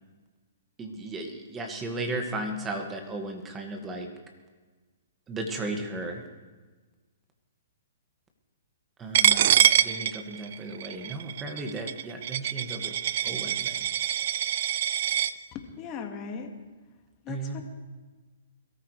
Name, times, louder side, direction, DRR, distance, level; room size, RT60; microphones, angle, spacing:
voice 1, 0.8-4.1 5.3-6.2 9.0-9.6 9.8-12.9 13.2-13.8 17.3-17.6, right 2 dB, 15° right, 4 dB, 1.9 m, -35 dB
Coin (dropping), 9.1-15.3, right 10 dB, 55° right, 0.4 m, -25 dB
voice 2, 15.5-16.6 17.2-17.6, left 6 dB, 30° left, 4 dB, 1.9 m, -38 dB
22.5 x 13.5 x 3.3 m, 1.3 s
hypercardioid pair, 135°, 0 cm